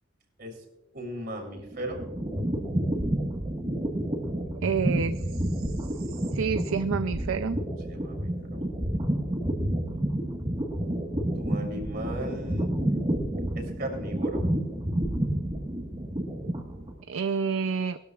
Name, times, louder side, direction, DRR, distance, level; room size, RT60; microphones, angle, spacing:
voice 1, 0.9-2.0 7.9-9.0 11.3-12.9 13.5-14.5, right 1 dB, 55° right, 1 dB, 3.1 m, -37 dB
sound 1, 1.5-17.0, right 1 dB, 25° right, 1.4 m, -30 dB
voice 2, 4.6-5.2 6.3-7.6 17.1-18.0, right 6 dB, 85° right, 11 dB, 0.4 m, -28 dB
19.5 x 13.0 x 2.4 m, 1.0 s
head